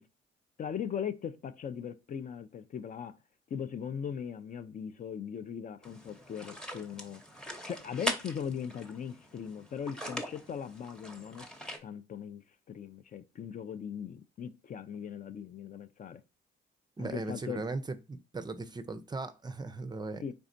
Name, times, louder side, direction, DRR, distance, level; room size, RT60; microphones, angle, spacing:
voice 1, 0.6-3.1 3.5-7.2 7.6-11.5 11.8-16.2 17.0-17.6 20.2-20.3, left 7 dB, 40° left, 0.4 m, -39 dB
sound 1, 5.8-11.8, equal, 5° left, 0.7 m, -41 dB
voice 2, 17.0-20.2, right 3 dB, 20° right, 0.4 m, -38 dB
4.0 x 3.4 x 2.6 m
cardioid pair, 90°, 20 cm